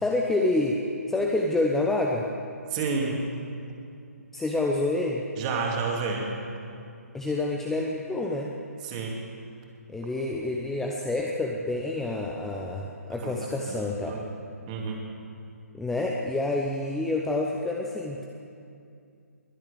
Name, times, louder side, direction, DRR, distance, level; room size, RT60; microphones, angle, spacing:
voice 1, 0.0-2.3 4.3-5.3 7.1-8.5 9.9-14.2 15.7-18.3, left 2 dB, 5° left, -1 dB, 0.7 m, -28 dB
voice 2, 2.7-3.2 5.4-6.3 8.8-9.2 13.2-13.4 13.7-14.3 14.7-15.0, right 4 dB, 25° right, 0 dB, 2.5 m, -30 dB
21.5 x 7.5 x 8.8 m, 2.5 s
figure-of-eight pair, 140°, 9 cm